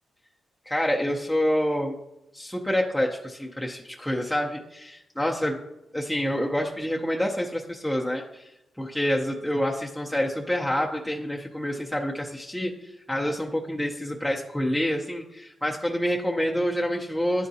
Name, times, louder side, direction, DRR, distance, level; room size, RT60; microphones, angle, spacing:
voice 1, 0.7-1.9 2.3-5.6 5.9-8.4 8.8-17.5, equal, 5° left, -2 dB, 0.5 m, -27 dB
10.5 x 3.5 x 2.7 m, 0.93 s
cardioid pair, 115°, 0 cm